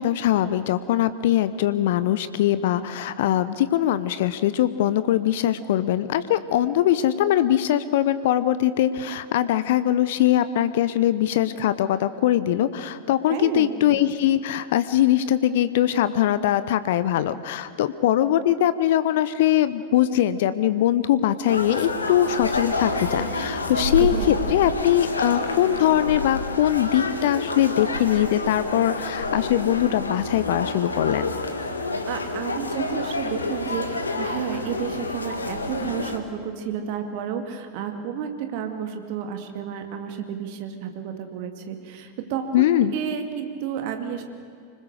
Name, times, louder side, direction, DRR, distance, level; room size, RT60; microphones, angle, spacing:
voice 1, 0.0-31.3 42.5-42.9, left 12 dB, 55° left, 14 dB, 0.7 m, -22 dB
voice 2, 13.3-14.0 23.8-24.6 32.0-44.2, right 8 dB, 45° right, 6 dB, 2.3 m, -31 dB
sound 1, 21.5-36.2, left 2 dB, 75° left, 1.7 m, -28 dB
25.5 x 20.5 x 6.7 m, 2.3 s
figure-of-eight pair, 90°, 0 cm